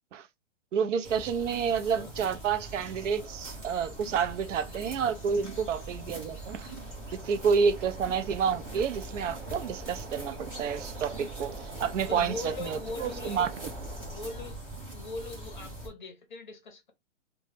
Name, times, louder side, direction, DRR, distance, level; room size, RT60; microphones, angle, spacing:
voice 1, 0.7-6.7 7.1-13.5, right 6 dB, 80° right, 0.5 m, -29 dB
sound 1, 1.0-15.9, right 1 dB, 20° right, 0.8 m, -42 dB
voice 2, 1.4-2.1 12.1-13.5 14.1-14.6 14.9-16.9, left 3 dB, 40° left, 0.5 m, -40 dB
sound 2, 2.9-14.4, right 3 dB, 55° right, 1.0 m, -48 dB
2.1 x 2.1 x 3.1 m
hypercardioid pair, 180°, 36 cm